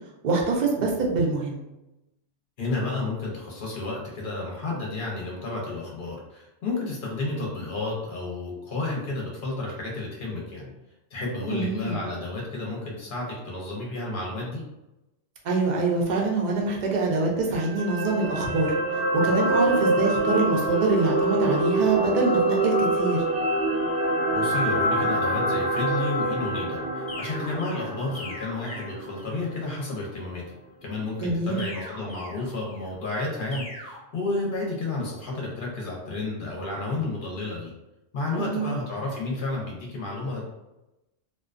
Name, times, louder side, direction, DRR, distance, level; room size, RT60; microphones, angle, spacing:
voice 1, 0.2-1.6 11.5-12.0 15.4-23.2 31.2-31.6 38.4-38.7, right 3 dB, 55° right, -1 dB, 0.5 m, -25 dB
voice 2, 2.6-10.7 11.1-14.6 24.3-30.4 30.8-37.7 38.1-40.5, left 2 dB, 55° left, -3 dB, 0.7 m, -31 dB
sound 1, 17.5-29.8 30.2-30.3, right 1 dB, 75° right, 1.0 m, -26 dB
sound 2, 27.1-29.5 31.6-32.9 33.5-33.9, left 1 dB, 5° right, 0.6 m, -41 dB
2.3 x 2.2 x 2.4 m, 0.96 s
omnidirectional pair, 1.2 m